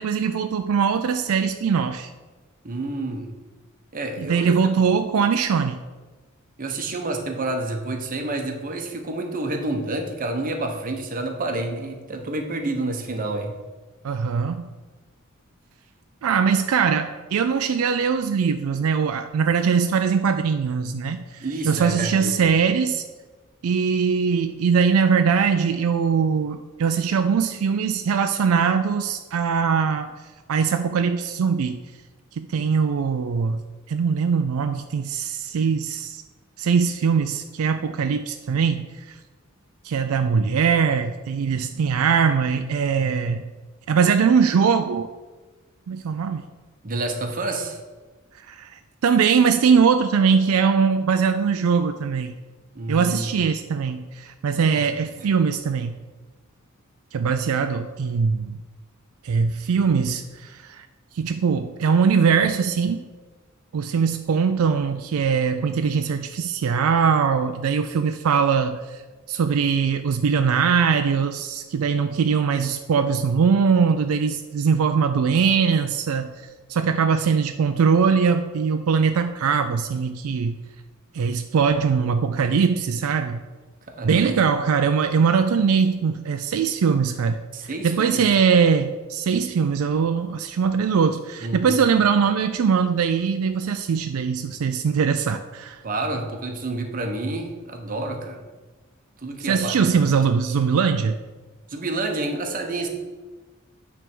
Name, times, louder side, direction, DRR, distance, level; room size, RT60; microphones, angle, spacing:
voice 1, 0.0-2.1 4.2-5.8 14.0-14.7 16.2-23.0 23.6-30.1 30.5-31.8 32.4-33.6 33.9-36.2 36.6-39.2 39.8-43.5 43.9-45.1 45.9-46.4 48.5-48.7 49.0-52.3 52.9-55.9 57.1-58.6 59.2-60.9 61.1-63.0 63.7-69.0 69.3-76.3 76.7-80.6 81.1-83.4 84.0-87.4 87.8-95.8 99.4-101.2, right 6 dB, 75° right, 8 dB, 0.4 m, -21 dB
voice 2, 2.6-3.3 3.9-4.6 6.6-13.5 21.4-22.3 46.8-47.8 52.7-53.3 54.7-54.8 55.2-55.3 83.9-84.3 87.5-88.2 91.4-91.8 95.8-98.4 99.2-100.1 101.7-102.9, right 2 dB, 40° right, 4 dB, 0.9 m, -29 dB
9.1 x 3.5 x 6.0 m, 1.3 s
head